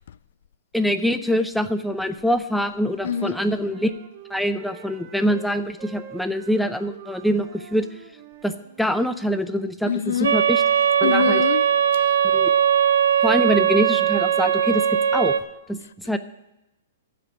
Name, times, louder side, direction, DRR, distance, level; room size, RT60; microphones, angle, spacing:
voice 1, 0.7-3.9 4.3-7.9 8.4-10.6 11.0-11.4 12.3-12.5 13.2-14.8 15.1-15.3 15.7-16.2, equal, ahead, 0.5 m, -24 dB
Wind instrument woodwind instrument, 2.6-5.5 5.8-9.1, right 7 dB, 35° right, 1.6 m, -46 dB
voice 2, 3.0-3.4 9.8-10.4 11.0-12.2 15.8-15.9, left 8 dB, 70° left, 0.4 m, -26 dB
sound 1, 10.2-15.4, right 9 dB, 80° right, 0.7 m, -19 dB
14.5 x 5.1 x 9.4 m
hypercardioid pair, 165°, 0 cm